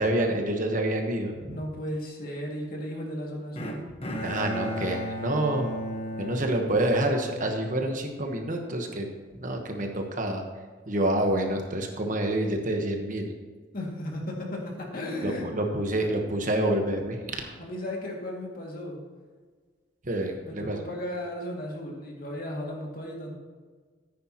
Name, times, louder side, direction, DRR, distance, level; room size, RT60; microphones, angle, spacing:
voice 1, 0.0-1.6 4.2-5.8 6.2-9.1 9.4-10.4 10.9-13.3 15.2-17.5 20.0-20.8, right 1 dB, 40° right, 3 dB, 1.2 m, -27 dB
voice 2, 1.5-3.8 13.7-15.5 17.6-19.0 20.4-23.3, left 1 dB, 45° left, -1 dB, 2.3 m, -35 dB
Bowed string instrument, 3.6-7.8, equal, 30° left, 1.2 m, -35 dB
14.0 x 9.7 x 3.0 m, 1.5 s
head